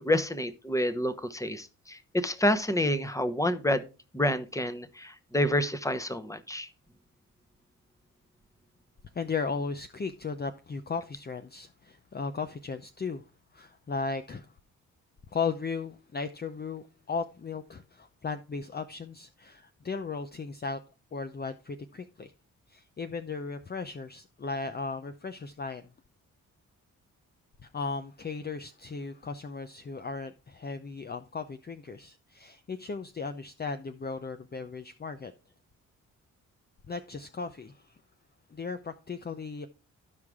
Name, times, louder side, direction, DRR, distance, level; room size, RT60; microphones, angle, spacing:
voice 1, 0.0-3.8 4.1-6.7, left 1 dB, 10° left, 1.0 m, -28 dB
voice 2, 9.1-13.2 13.5-14.5 15.3-20.8 21.1-22.3 22.7-25.9 27.6-35.3 36.9-38.0 38.5-39.7, left 4 dB, 30° left, 0.7 m, -36 dB
13.5 x 4.8 x 3.6 m
cardioid pair, 55°, 34 cm